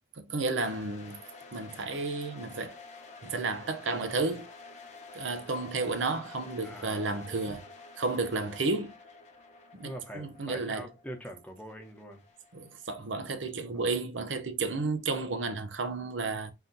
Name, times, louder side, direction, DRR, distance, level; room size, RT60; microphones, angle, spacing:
voice 1, 0.1-1.2 1.5-2.8 3.2-4.5 5.1-7.6 8.0-8.9 9.8-10.9 12.5-16.5, right 3 dB, 85° right, 0.7 m, -32 dB
sound 1, 0.6-13.4, left 3 dB, 35° left, 0.8 m, -50 dB
voice 2, 6.6-7.4 8.5-8.6 9.8-12.2 13.6-13.9, equal, 5° left, 0.7 m, -44 dB
4.0 x 2.7 x 3.8 m
head